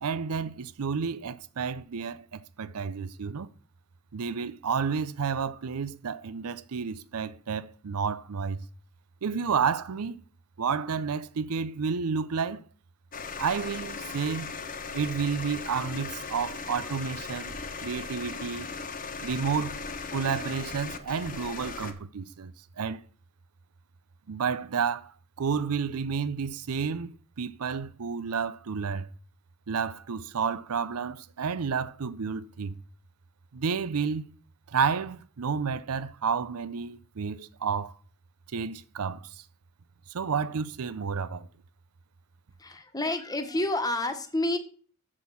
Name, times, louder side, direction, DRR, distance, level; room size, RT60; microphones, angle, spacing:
voice 1, 0.0-3.5 4.1-8.6 9.2-10.2 10.6-12.6 13.4-14.5 14.9-17.5 17.8-18.7 19.2-19.8 20.1-23.0 24.3-29.1 29.7-32.8 33.5-34.3 34.7-37.9 38.5-39.4 40.1-41.5, right 6 dB, 80° right, 0.6 m, -31 dB
sound 1, 13.1-21.9, left 4 dB, 40° left, 1.2 m, -38 dB
voice 2, 42.6-44.6, left 1 dB, 15° left, 1.3 m, -29 dB
7.6 x 6.2 x 7.0 m
head